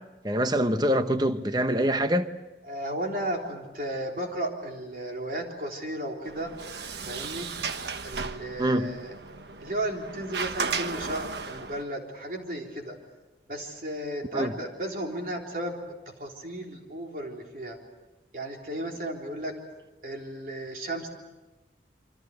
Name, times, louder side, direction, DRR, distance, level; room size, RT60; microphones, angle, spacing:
voice 1, 0.2-2.3 8.6-8.9 14.3-14.5, equal, 25° right, 1.0 m, -25 dB
voice 2, 2.6-6.6 7.1-7.5 8.0-9.1 9.6-13.0 13.5-15.8 16.2-17.8 18.3-19.5 20.0-21.1, right 1 dB, 50° right, 3.7 m, -34 dB
Sliding door, 6.2-11.8, right 4 dB, 70° right, 1.3 m, -35 dB
27.5 x 25.0 x 6.6 m
head